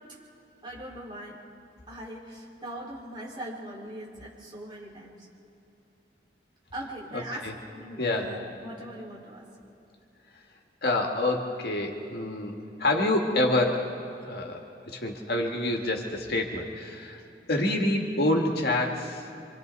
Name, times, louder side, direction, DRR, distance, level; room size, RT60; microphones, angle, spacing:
voice 1, 0.6-1.4 1.9-5.3 6.7-9.4, right 1 dB, 25° right, -5 dB, 4.8 m, -40 dB
voice 2, 8.0-8.3 10.8-13.9 14.2-17.2 17.5-19.2, left 1 dB, 60° left, 1 dB, 2.0 m, -27 dB
27.5 x 25.5 x 4.1 m, 3.0 s
head